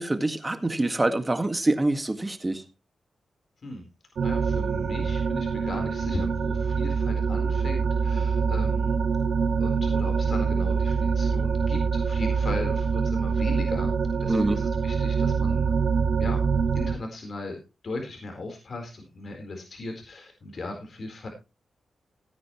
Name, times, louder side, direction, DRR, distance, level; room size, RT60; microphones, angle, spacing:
voice 1, 0.0-2.6 14.3-14.6, right 2 dB, 20° right, 8 dB, 1.9 m, -25 dB
sound 1, 4.1-16.9, right 5 dB, 70° right, 1.6 m, -25 dB
voice 2, 4.2-9.0 9.6-15.7 16.2-16.4 16.7-17.6 17.8-21.3, left 2 dB, 55° left, 3 dB, 4.2 m, -37 dB
17.0 x 9.2 x 3.1 m, 0.27 s
cardioid pair, 80°, 0 cm